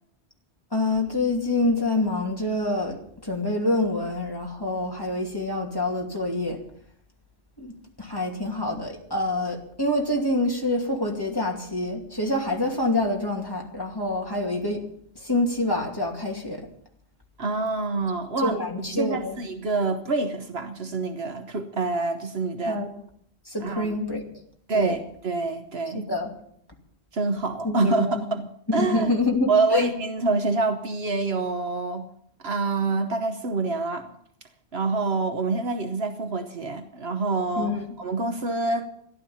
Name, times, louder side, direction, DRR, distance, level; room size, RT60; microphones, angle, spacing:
voice 1, 0.7-6.6 7.6-14.8 15.1-16.7 18.4-19.4 22.7-22.9 23.4-24.2 24.7-25.0 25.9-26.3 27.6-28.3 28.8-29.9 37.6-37.8, left 2 dB, 20° left, 2.7 m, -26 dB
voice 2, 17.4-18.6 18.9-22.8 23.6-23.9 24.7-26.1 27.1-29.1 29.5-32.1 32.4-34.1 34.7-38.9, right 3 dB, 70° right, 1.3 m, -26 dB
14.5 x 11.5 x 7.2 m
omnidirectional pair, 1.1 m